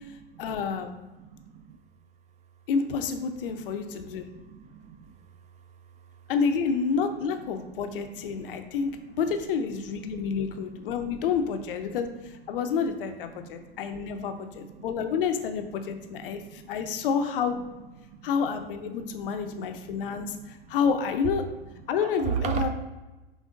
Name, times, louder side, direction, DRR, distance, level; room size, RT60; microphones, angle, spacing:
voice 1, 0.4-0.9 2.7-4.3 6.3-8.9 9.2-17.6 18.2-21.4 21.9-22.7, left 6 dB, 65° left, 7 dB, 0.6 m, -29 dB
voice 2, 1.2-1.8 4.2-5.1 7.4-7.5 8.5-8.7 10.1-10.2 10.5-10.8 13.3-15.1 16.0-17.0 18.0-18.3 19.4-19.5 19.7-20.6 22.0-22.6, right 8 dB, 25° right, 6 dB, 0.5 m, -38 dB
5.2 x 3.4 x 2.5 m, 1.1 s
hypercardioid pair, 95°, 30 cm